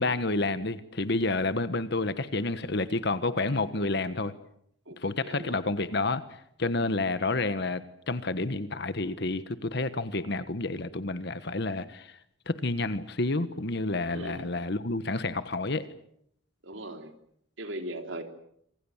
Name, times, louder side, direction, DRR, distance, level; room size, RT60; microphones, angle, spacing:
voice 1, 0.0-4.3 5.0-6.2 6.6-12.2 12.5-15.9, left 2 dB, 60° left, 12 dB, 1.4 m, -29 dB
voice 2, 4.9-5.6 14.1-14.5 16.6-17.1 17.6-18.2, right 1 dB, 75° right, 6 dB, 3.5 m, -39 dB
27.5 x 25.5 x 7.3 m, 0.72 s
head